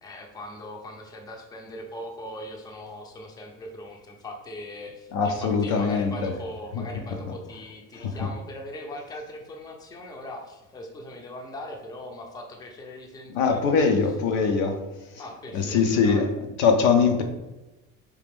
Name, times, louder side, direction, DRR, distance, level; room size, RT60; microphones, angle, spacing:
voice 1, 0.0-14.1 15.2-16.3, left 1 dB, 10° left, 2 dB, 0.4 m, -40 dB
voice 2, 5.1-6.3 6.7-6.8 8.0-8.3 13.3-14.8 15.5-16.3 16.6-17.2, left 5 dB, 85° left, 4 dB, 0.8 m, -22 dB
4.9 x 2.5 x 3.5 m, 1.0 s
supercardioid pair, 115°, 41 cm